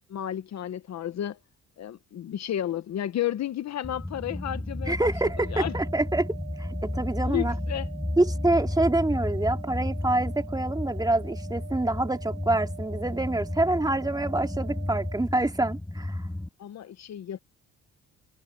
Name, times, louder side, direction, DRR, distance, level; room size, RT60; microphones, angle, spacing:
voice 1, 0.1-1.4 1.8-5.1 5.5-5.7 7.3-7.9 16.6-17.4, left 11 dB, 60° left, 1.1 m, -32 dB
sound 1, 3.8-16.5, left 1 dB, 10° left, 6.7 m, -33 dB
voice 2, 4.9-6.3 6.6-7.5 8.2-16.2, right 2 dB, 15° right, 3.0 m, -26 dB
sound 2, 5.2-15.2, right 10 dB, 65° right, 4.3 m, -46 dB
cardioid pair, 90°, 30 cm